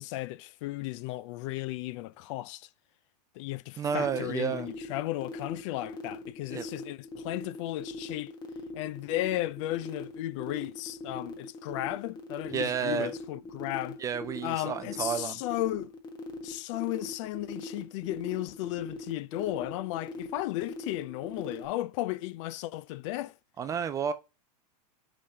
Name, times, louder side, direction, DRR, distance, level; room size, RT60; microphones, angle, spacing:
voice 1, 0.0-2.7 3.4-8.3 8.7-14.0 14.4-15.9 16.4-23.3, left 16 dB, 50° left, 0.4 m, -34 dB
voice 2, 3.8-4.7 6.5-6.6 12.5-13.1 14.0-15.4 23.6-24.1, right 7 dB, 15° right, 0.3 m, -31 dB
sound 1, 3.9-21.6, left 2 dB, 20° left, 1.1 m, -41 dB
7.5 x 5.0 x 2.8 m
supercardioid pair, 140°, 21 cm